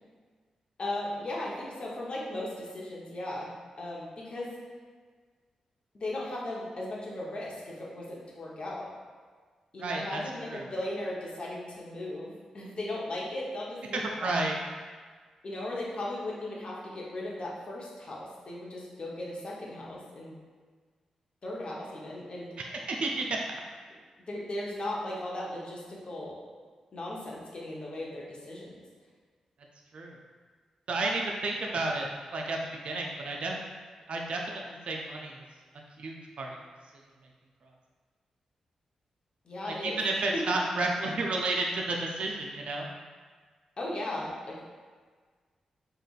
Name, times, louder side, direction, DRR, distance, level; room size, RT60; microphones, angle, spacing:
voice 1, 0.8-4.5 5.9-8.9 9.7-14.4 15.4-20.4 21.4-22.6 24.3-26.4 26.9-28.8 39.4-40.0 40.3-40.4 43.8-44.6, left 1 dB, 50° left, -4 dB, 0.8 m, -37 dB
voice 2, 9.8-10.2 10.5-10.7 13.9-14.6 22.6-23.4 29.9-30.2 30.9-33.6 34.1-35.4 36.0-36.6 39.7-42.9, right 2 dB, 60° right, 0 dB, 0.3 m, -31 dB
3.7 x 2.3 x 2.3 m, 1.5 s
supercardioid pair, 40°, 2 cm